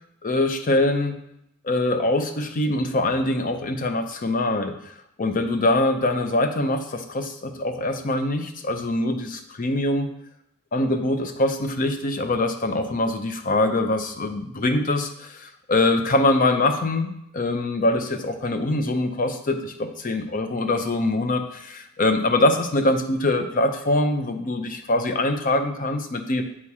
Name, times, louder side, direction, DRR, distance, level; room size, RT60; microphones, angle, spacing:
voice 1, 0.2-1.2 1.6-4.9 5.2-10.1 10.7-26.4, left 2 dB, 40° left, 7 dB, 0.5 m, -23 dB
7.4 x 2.8 x 4.7 m, 0.76 s
head